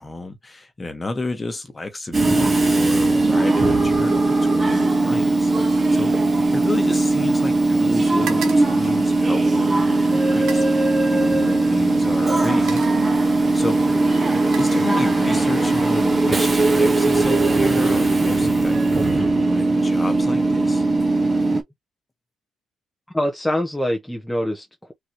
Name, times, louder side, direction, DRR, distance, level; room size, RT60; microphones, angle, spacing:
voice 1, 0.0-13.8 14.5-18.8 19.1-20.8, left 2 dB, 20° left, 1.4 m, -31 dB
Train / Subway metro underground, 2.1-21.6, right 2 dB, 30° right, 1.3 m, -19 dB
sound 1, 8.2-9.7 10.3-10.8 11.8-12.0 12.4-13.1 14.0-15.4 15.7-16.1, right 7 dB, 80° right, 1.1 m, -39 dB
voice 2, 23.1-24.9, left 1 dB, 5° left, 1.0 m, -24 dB
4.1 x 3.0 x 3.1 m
cardioid pair, 90°, 0 cm